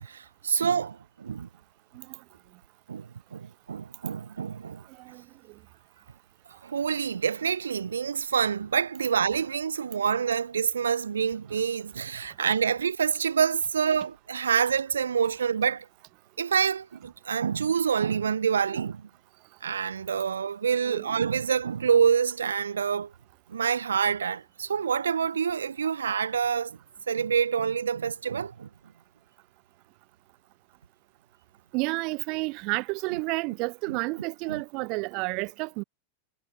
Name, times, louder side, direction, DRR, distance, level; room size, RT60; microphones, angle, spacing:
voice 1, 0.0-1.5 2.9-4.8 6.6-15.8 16.4-19.1 19.6-23.1 23.5-26.8 27.1-28.7 33.9-34.0 34.5-34.6, right 7 dB, 70° right, 1.5 m, -27 dB
voice 2, 4.9-5.2 20.8-21.1 31.7-35.8, right 29 dB, 45° right, 1.2 m, -31 dB
figure-of-eight pair, 90°, 0 cm